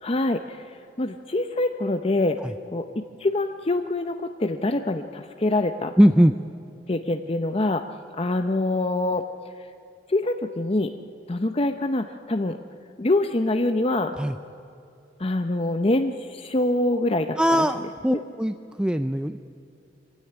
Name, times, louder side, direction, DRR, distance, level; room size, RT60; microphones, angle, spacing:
voice 1, 0.0-0.6 1.0-2.4 2.7-2.8 3.2-5.9 6.9-7.8 8.2-9.2 10.1-10.9 11.3-12.6 13.0-14.1 15.2-17.4 18.1-18.2, left 2 dB, 35° left, 7 dB, 0.7 m, -24 dB
voice 2, 6.0-6.3 14.2-14.4 17.4-19.4, equal, 5° right, 9 dB, 0.4 m, -20 dB
24.0 x 16.5 x 9.9 m, 2.8 s
head